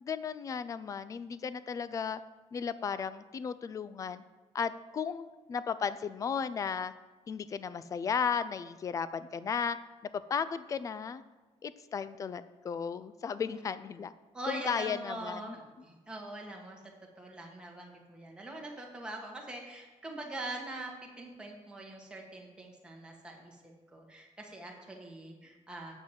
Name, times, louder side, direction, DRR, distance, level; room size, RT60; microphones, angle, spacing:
voice 1, 0.0-2.2 2.5-4.2 4.5-6.9 7.3-9.8 10.1-11.2 11.6-14.1 14.5-15.5, left 6 dB, 25° left, 15 dB, 0.4 m, -35 dB
voice 2, 14.3-16.8 17.2-25.9, right 1 dB, 10° right, -1 dB, 1.7 m, -43 dB
8.0 x 6.2 x 7.4 m, 1.2 s
cardioid pair, 165°, 12 cm